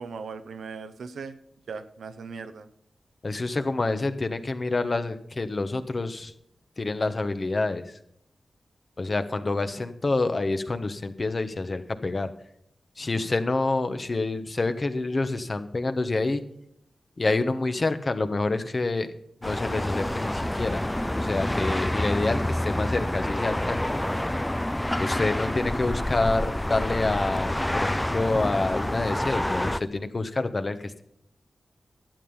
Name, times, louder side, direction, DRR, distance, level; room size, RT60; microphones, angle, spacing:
voice 1, 0.0-1.4 1.7-2.7, right 5 dB, 85° right, 10 dB, 0.8 m, -38 dB
voice 2, 3.2-6.3 6.8-8.0 9.0-12.3 13.0-16.4 17.2-19.1 19.4-20.8 21.2-24.0 25.0-31.0, left 3 dB, 50° left, 9 dB, 1.2 m, -27 dB
sound 1, 19.4-29.8, left 1 dB, 15° left, 0.5 m, -28 dB
12.0 x 8.9 x 5.6 m, 0.72 s
cardioid pair, 40°, 0 cm